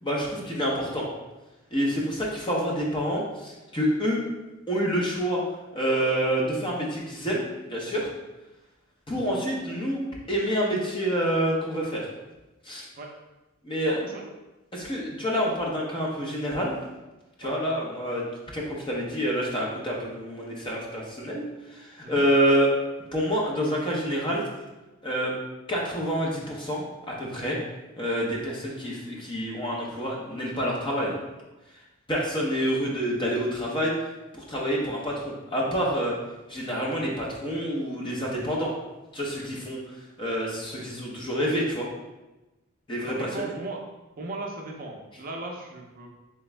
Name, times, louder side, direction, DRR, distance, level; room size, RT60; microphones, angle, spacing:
voice 1, 0.0-1.1 1.7-4.2 4.7-5.4 5.7-8.1 9.1-10.0 10.3-12.1 12.6-12.9 13.6-13.9 14.7-16.7 17.4-18.3 18.5-21.4 21.7-22.7 23.1-24.5 25.0-25.3 25.7-27.6 28.0-31.1 32.1-33.9 34.3-36.2 36.5-38.7 39.1-39.8 40.2-41.9 42.9-43.5, equal, 25° left, -3 dB, 0.7 m, -27 dB
voice 2, 13.9-14.3 17.4-17.5 22.0-22.2 43.1-43.8 44.2-46.1, right 2 dB, 40° right, 0 dB, 0.5 m, -37 dB
3.4 x 3.0 x 3.2 m, 1.1 s
head